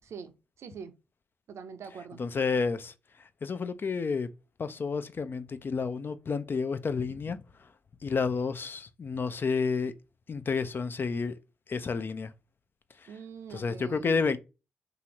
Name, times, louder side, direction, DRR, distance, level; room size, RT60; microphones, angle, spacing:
voice 1, 0.6-0.9 1.5-2.2 13.1-14.2, right 6 dB, 65° right, 0.5 m, -43 dB
voice 2, 2.2-2.9 3.4-4.3 4.6-7.7 8.0-9.9 10.3-11.4 11.7-12.3 13.0-13.1 13.5-14.4, left 5 dB, 45° left, 0.4 m, -30 dB
2.7 x 2.4 x 2.9 m
hypercardioid pair, 40°, 5 cm